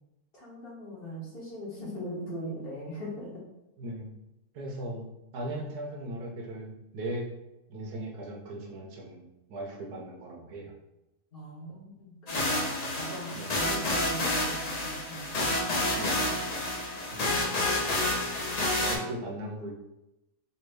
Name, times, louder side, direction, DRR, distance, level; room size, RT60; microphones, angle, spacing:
voice 1, 0.3-3.4 11.3-15.5, equal, 45° left, -6 dB, 0.9 m, -41 dB
voice 2, 3.8-4.1 4.5-7.3 7.7-10.7 13.4-13.5 16.0-16.2 17.0-17.5 18.8-19.7, right 1 dB, 80° right, 1 dB, 1.2 m, -38 dB
sound 1, 12.3-19.0, left 1 dB, 80° left, 0.3 m, -29 dB
3.4 x 2.6 x 3.2 m, 0.94 s
omnidirectional pair, 1.7 m